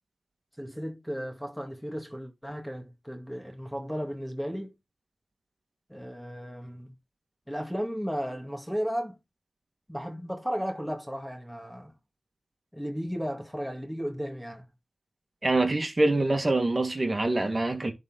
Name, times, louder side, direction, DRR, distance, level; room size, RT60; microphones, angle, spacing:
voice 1, 0.6-4.8 5.9-6.9 7.5-9.2 9.9-11.9 12.7-14.6, equal, 5° left, 2.1 m, -34 dB
voice 2, 15.4-17.9, right 2 dB, 35° right, 2.2 m, -25 dB
11.0 x 4.1 x 3.9 m
cardioid pair, 50°, 0 cm